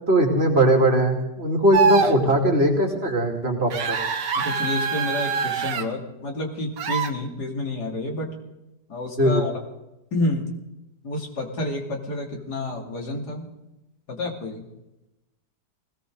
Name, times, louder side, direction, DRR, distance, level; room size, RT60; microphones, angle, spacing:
voice 1, 0.1-4.0 9.2-9.4, right 1 dB, 35° right, 1 dB, 2.9 m, -20 dB
sound 1, 1.7-2.2 3.7-5.8 6.8-7.1, right 5 dB, 85° right, 1.8 m, -23 dB
voice 2, 4.3-8.3 8.9-9.5 10.1-10.6 11.0-13.5 14.1-14.7, left 2 dB, 70° left, 1 dB, 3.3 m, -29 dB
20.0 x 17.5 x 3.9 m, 0.94 s
omnidirectional pair, 1.9 m